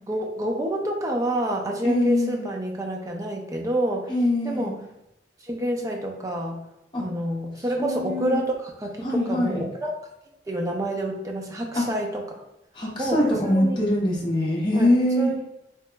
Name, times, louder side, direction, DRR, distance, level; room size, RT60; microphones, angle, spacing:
voice 1, 0.1-4.1 4.4-4.8 5.4-6.6 7.0-10.0 10.5-12.4 13.0-13.8 14.7-14.9 15.2-15.4, right 1 dB, 20° right, 1 dB, 0.4 m, -28 dB
voice 2, 1.8-2.4 4.1-4.7 6.9-7.0 7.8-8.4 9.0-9.7 11.7-11.8 12.7-15.3, left 1 dB, 25° left, -6 dB, 0.7 m, -23 dB
2.8 x 2.1 x 3.3 m, 0.88 s
head